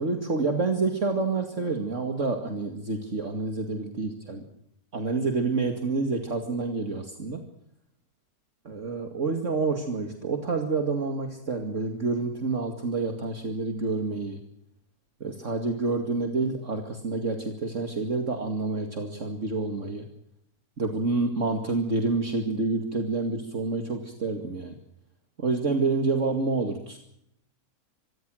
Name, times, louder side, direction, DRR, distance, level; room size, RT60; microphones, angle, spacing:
voice 1, 0.0-4.4 4.9-7.4 8.6-14.4 15.2-20.1 20.8-24.7 25.4-27.0, right 3 dB, 55° right, 5 dB, 2.6 m, -28 dB
25.5 x 21.5 x 6.4 m, 0.75 s
omnidirectional pair, 1.6 m